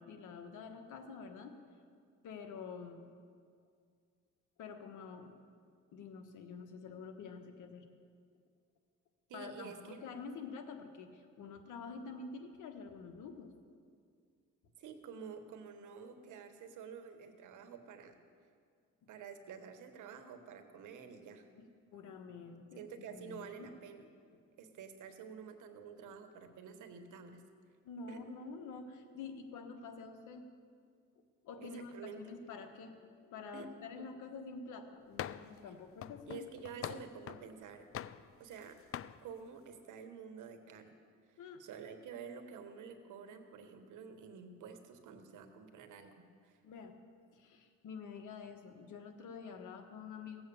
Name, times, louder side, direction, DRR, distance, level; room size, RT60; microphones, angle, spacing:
voice 1, 0.0-1.6 2.2-3.1 4.6-5.4 5.9-7.9 9.3-13.5 21.9-23.7 27.8-30.5 31.4-36.4 41.4-41.6 46.6-46.9 47.3-50.4, left 5 dB, 85° left, 6 dB, 1.4 m, -48 dB
voice 2, 9.3-10.0 14.8-18.2 19.1-21.5 22.8-24.1 24.6-27.4 28.1-28.2 31.6-32.4 33.5-34.1 36.3-37.9 38.4-38.8 39.2-40.9 41.3-46.1 46.4-46.6, right 6 dB, 80° right, 7 dB, 1.4 m, -49 dB
sound 1, 35.2-35.6 36.0-37.5 37.9-38.6 38.9-39.2, left 10 dB, 50° left, 0.4 m, -43 dB
17.0 x 7.8 x 7.0 m, 2.1 s
cardioid pair, 90°, 30 cm